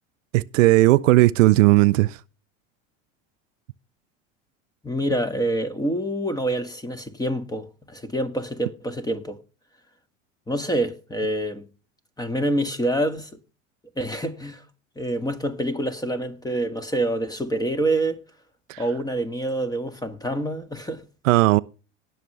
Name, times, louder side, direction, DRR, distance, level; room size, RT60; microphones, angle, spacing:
voice 1, 0.3-2.2 18.7-18.8 21.3-21.6, right 18 dB, 80° right, 0.6 m, -16 dB
voice 2, 4.8-9.4 10.5-11.7 12.2-13.3 14.0-14.6 15.0-18.2 18.8-21.0, right 1 dB, 10° left, 1.8 m, -26 dB
19.0 x 6.6 x 3.3 m
hypercardioid pair, 90°, 38 cm